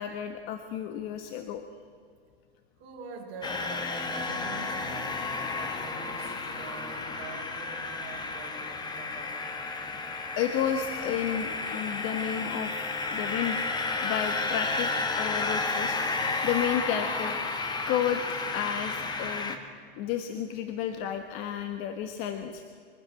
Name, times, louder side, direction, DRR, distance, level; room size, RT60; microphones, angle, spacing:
voice 1, 0.0-1.6 10.4-13.6 14.0-14.9 15.2-16.0 16.4-17.4 17.9-18.2 18.5-19.6 20.0-22.6, left 9 dB, 40° left, 7 dB, 1.3 m, -31 dB
voice 2, 2.8-9.6, right 4 dB, 40° right, -3 dB, 5.3 m, -45 dB
sound 1, 3.4-19.6, left 3 dB, 15° left, 1.5 m, -32 dB
23.5 x 13.0 x 9.4 m, 2.2 s
hypercardioid pair, 140°, 31 cm